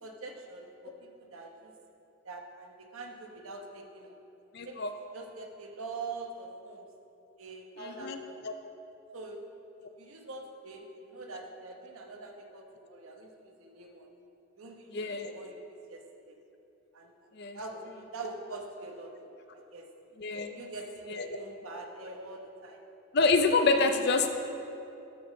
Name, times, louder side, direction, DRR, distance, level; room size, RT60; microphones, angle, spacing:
voice 1, 0.0-1.7 2.2-4.2 4.6-4.8 5.1-6.9 7.4-8.4 9.1-9.4 10.0-14.1 14.6-16.0 16.9-17.1 17.5-19.9 20.5-22.8 24.1-24.2, right 3 dB, 90° right, 2 dB, 1.1 m, -44 dB
voice 2, 4.5-4.9 7.8-8.2 8.4-8.5 14.9-15.3 17.4-17.6 20.2-20.6 21.1-21.2 23.1-24.3, left 3 dB, 50° left, 6 dB, 0.5 m, -27 dB
12.5 x 4.2 x 6.3 m, 2.8 s
head